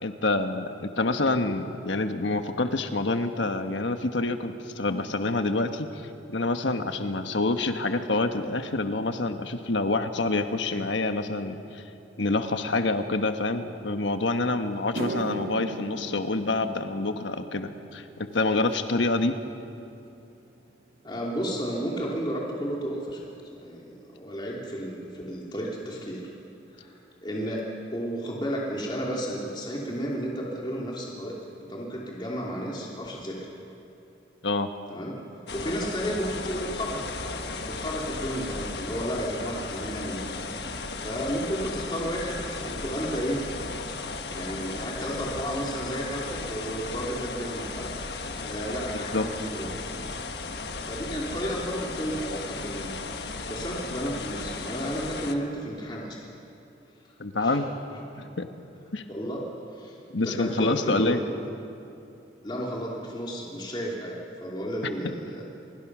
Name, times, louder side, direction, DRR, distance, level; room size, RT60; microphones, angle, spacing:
voice 1, 0.0-11.8 12.2-19.4 34.4-34.7 48.9-49.2 57.2-57.7 58.2-58.5 58.9-59.0 60.1-61.2 65.0-65.1, left 2 dB, 90° left, 7 dB, 1.3 m, -27 dB
sound 1, 14.2-14.3 14.8-23.3 23.6-24.0 24.7-24.8 27.6-27.7 29.3-29.4 29.6-29.9 30.1-30.7 31.1-31.2 31.7-31.8, right 2 dB, 50° right, 0.9 m, -41 dB
voice 2, 21.0-23.3 23.5-26.2 26.7-31.4 31.7-33.4 34.9-35.1 35.5-37.2 37.7-40.3 41.0-43.4 44.3-47.9 48.4-49.7 50.9-52.9 53.5-56.2 57.4-57.6 58.1-58.2 59.1-61.2 62.4-65.5, equal, 25° left, -3 dB, 2.9 m, -32 dB
sound 2, 35.5-55.3, left 3 dB, 65° left, 1.4 m, -35 dB
25.5 x 23.0 x 6.1 m, 2.8 s
head